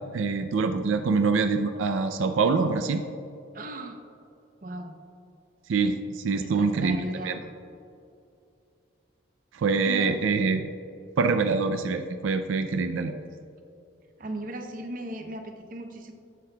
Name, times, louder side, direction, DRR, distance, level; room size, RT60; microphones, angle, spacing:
voice 1, 0.1-3.0 5.7-7.0 7.2-7.4 9.5-10.6 11.2-13.2, right 4 dB, 85° right, 7 dB, 0.4 m, -25 dB
voice 2, 3.5-4.0 4.6-5.0 6.4-7.4 9.8-10.1 14.2-16.1, right 1 dB, 45° right, 5 dB, 0.7 m, -37 dB
9.3 x 8.3 x 2.2 m, 2.6 s
head